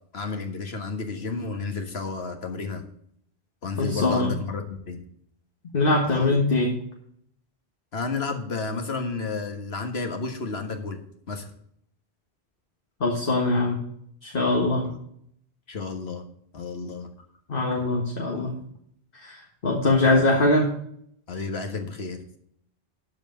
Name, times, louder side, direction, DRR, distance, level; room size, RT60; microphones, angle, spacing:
voice 1, 0.1-2.8 3.6-5.0 6.0-6.5 7.9-11.0 11.3-11.5 14.8-15.0 15.7-16.2 16.5-17.1 20.0-20.2 21.3-22.4, left 4 dB, 75° left, 5 dB, 1.8 m, -32 dB
voice 2, 3.8-4.3 5.7-6.7 13.0-13.8 14.2-14.8 17.5-18.5 19.2-20.7, left 2 dB, 55° left, 0 dB, 1.7 m, -22 dB
12.5 x 4.9 x 7.9 m, 0.67 s
omnidirectional pair, 1.1 m